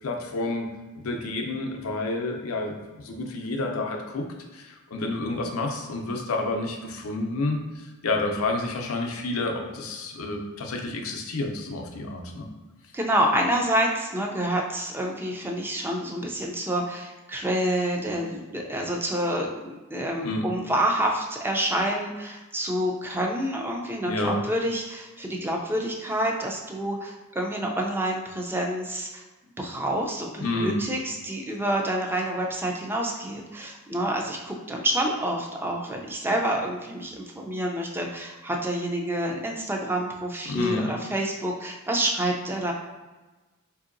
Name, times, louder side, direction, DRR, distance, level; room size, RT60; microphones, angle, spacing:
voice 1, 0.0-4.3 4.5-12.5 20.2-20.5 24.1-24.4 30.4-30.8 40.5-40.9, left 2 dB, 75° left, 3 dB, 0.5 m, -29 dB
voice 2, 12.9-29.2 29.6-42.7, right 1 dB, 10° right, 1 dB, 0.4 m, -28 dB
4.4 x 2.7 x 2.5 m, 1.2 s
head